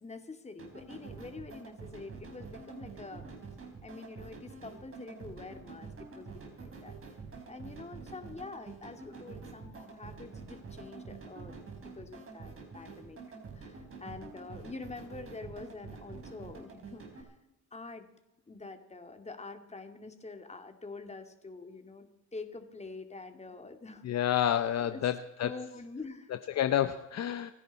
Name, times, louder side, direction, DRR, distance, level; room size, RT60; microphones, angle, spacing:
voice 1, 0.0-3.3 3.8-6.9 7.5-13.2 13.5-17.3 17.7-18.1 18.5-24.0 24.8-25.1 25.4-26.3, left 3 dB, 20° left, 6 dB, 2.4 m, -46 dB
sound 1, 0.6-17.2, right 4 dB, 45° right, 4.2 m, -47 dB
voice 2, 24.0-25.6 26.5-27.5, left 10 dB, 60° left, 10 dB, 0.8 m, -29 dB
29.5 x 10.0 x 4.2 m, 0.92 s
cardioid pair, 90°, 30 cm